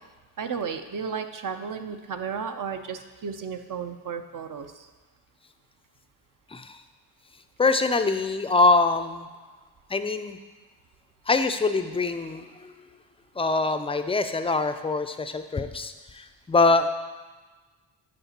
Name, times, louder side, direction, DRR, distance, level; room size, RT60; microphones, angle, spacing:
voice 1, 0.4-4.9, right 6 dB, 45° right, 6 dB, 0.6 m, -33 dB
voice 2, 7.6-9.3 9.9-10.4 11.3-12.7 13.4-16.9, left 3 dB, 15° left, 9 dB, 0.4 m, -24 dB
9.6 x 5.1 x 2.9 m, 1.3 s
supercardioid pair, 50°, 46 cm